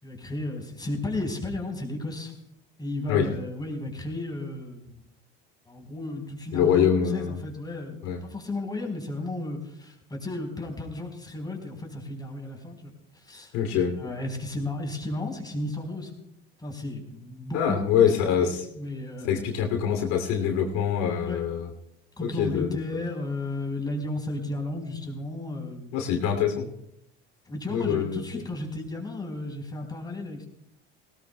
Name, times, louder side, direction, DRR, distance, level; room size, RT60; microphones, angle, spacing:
voice 1, 0.0-2.3 2.8-5.0 5.7-16.1 16.6-17.8 18.4-19.5 21.2-21.4 22.2-26.0 27.5-30.5, left 2 dB, 15° left, 2 dB, 4.2 m, -34 dB
voice 2, 6.5-7.4 8.0-8.2 13.5-13.9 17.5-18.7 19.3-21.7 22.2-22.8 25.9-26.7 27.7-28.2, left 8 dB, 65° left, 4 dB, 2.9 m, -24 dB
19.5 x 18.0 x 2.3 m, 0.77 s
supercardioid pair, 90°, 29 cm